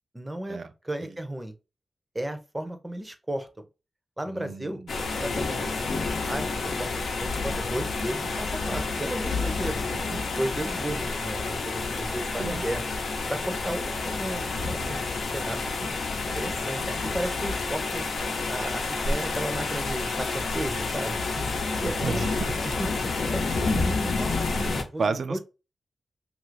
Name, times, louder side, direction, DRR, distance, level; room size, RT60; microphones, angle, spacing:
voice 1, 0.1-0.6 0.8-1.5 2.1-3.5 4.2-6.5 6.8-6.9 7.2-9.8 10.3-12.8 13.3-15.0 15.3-16.0 16.4-18.0 18.5-21.5 21.8-22.2 22.6-25.4, right 1 dB, 15° right, 0.6 m, -34 dB
voice 2, 4.3-4.9 9.9-10.2 12.4-12.6 21.8-22.5 25.0-25.4, right 4 dB, 65° right, 0.4 m, -32 dB
sound 1, 4.9-24.8, left 3 dB, 90° left, 0.6 m, -29 dB
2.8 x 2.4 x 3.1 m
wide cardioid pair, 100°, 0 cm